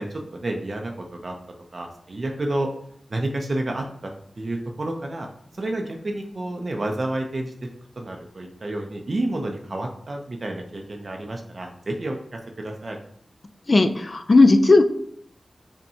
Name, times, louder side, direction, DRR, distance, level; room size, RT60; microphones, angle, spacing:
voice 1, 0.0-1.4 1.7-2.7 3.1-5.3 5.6-7.7 8.0-13.0, right 1 dB, 60° right, 2 dB, 0.5 m, -30 dB
voice 2, 13.7-14.8, left 3 dB, 50° left, 8 dB, 0.4 m, -15 dB
5.5 x 2.2 x 2.7 m, 0.65 s
cardioid pair, 45°, 0 cm